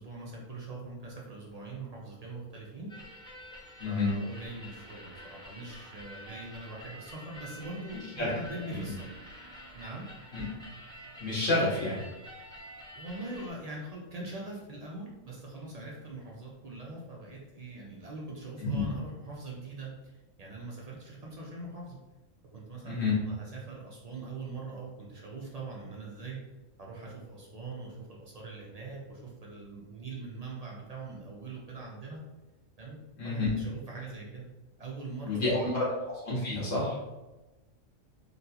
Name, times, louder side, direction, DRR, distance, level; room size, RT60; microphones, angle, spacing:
voice 1, 0.0-2.9 3.9-9.1 9.7-10.1 13.0-19.9 20.4-22.0 22.5-26.4 26.8-32.2 32.8-33.0 33.2-34.4 34.8-35.8, right 3 dB, 60° right, -3 dB, 0.4 m, -42 dB
sound 1, 2.9-13.5, equal, 5° left, 0.4 m, -48 dB
voice 2, 3.8-4.1 8.2-8.3 8.7-8.8 10.3-10.5 11.2-12.0 18.6-18.8 22.8-23.2 33.2-33.5 35.2-35.9 36.2-37.0, left 2 dB, 75° left, -8 dB, 1.8 m, -29 dB
4.0 x 2.2 x 2.7 m, 1.1 s
omnidirectional pair, 1.3 m